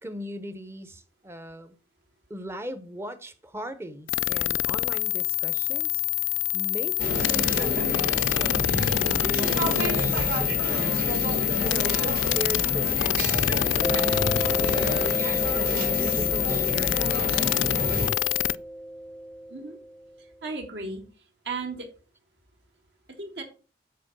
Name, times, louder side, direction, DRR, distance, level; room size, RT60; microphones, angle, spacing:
voice 1, 0.0-1.7 2.3-6.0 6.5-8.7 9.0-14.1 14.6-17.9, equal, 15° right, 0.7 m, -39 dB
sound 1, 4.1-18.6, left 16 dB, 90° left, 0.3 m, -26 dB
sound 2, 7.0-18.1, equal, 50° right, 1.8 m, -29 dB
Mallet percussion, 13.8-20.2, equal, 5° left, 0.3 m, -34 dB
voice 2, 20.4-21.0 21.4-21.9 23.2-23.4, right 3 dB, 65° right, 2.1 m, -34 dB
7.6 x 4.6 x 5.4 m
head